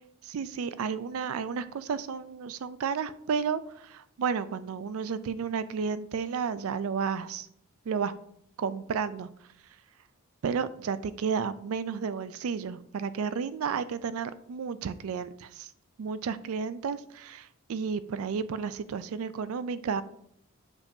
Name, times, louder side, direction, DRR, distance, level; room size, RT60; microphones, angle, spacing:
voice 1, 0.2-7.5 7.9-8.1 8.6-9.3 10.4-15.7 16.0-20.0, right 6 dB, 65° right, 14 dB, 0.4 m, -32 dB
7.2 x 5.3 x 2.6 m, 0.71 s
head